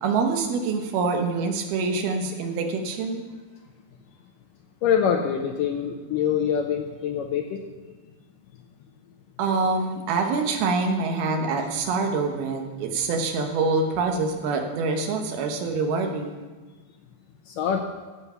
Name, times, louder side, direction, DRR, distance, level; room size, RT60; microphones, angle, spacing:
voice 1, 0.0-3.2 9.4-16.3, right 4 dB, 75° right, 3 dB, 2.9 m, -25 dB
voice 2, 4.8-7.6 17.5-17.8, left 8 dB, 80° left, 4 dB, 1.9 m, -24 dB
14.5 x 7.2 x 5.5 m, 1.3 s
omnidirectional pair, 4.6 m